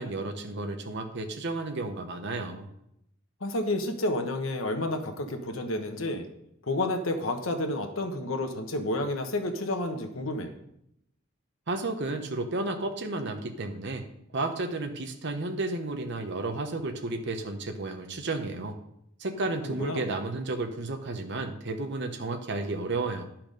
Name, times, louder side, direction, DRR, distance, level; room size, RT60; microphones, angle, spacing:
voice 1, 0.0-2.7 11.7-14.0 14.3-18.8 19.2-23.3, right 2 dB, 60° right, 5 dB, 0.9 m, -32 dB
voice 2, 3.4-6.2 6.7-10.5 19.6-20.0, left 1 dB, 80° left, 6 dB, 1.2 m, -30 dB
10.5 x 5.9 x 5.2 m, 0.76 s
head